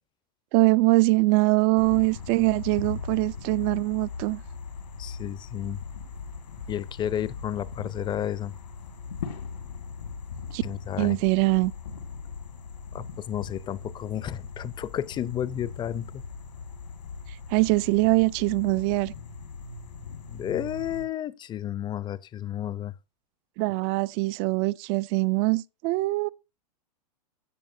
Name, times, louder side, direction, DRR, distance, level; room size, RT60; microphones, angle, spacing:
voice 1, 0.5-4.4 10.5-10.6 11.0-11.7 17.5-19.1 23.6-26.3, right 22 dB, 40° right, 0.4 m, -23 dB
sound 1, 1.8-21.0, left 5 dB, 75° left, 1.9 m, -39 dB
voice 2, 5.0-5.8 6.7-8.5 10.6-11.2 12.9-16.2 20.3-22.9, left 11 dB, 20° left, 0.6 m, -32 dB
15.0 x 6.9 x 2.7 m
hypercardioid pair, 105°, 21 cm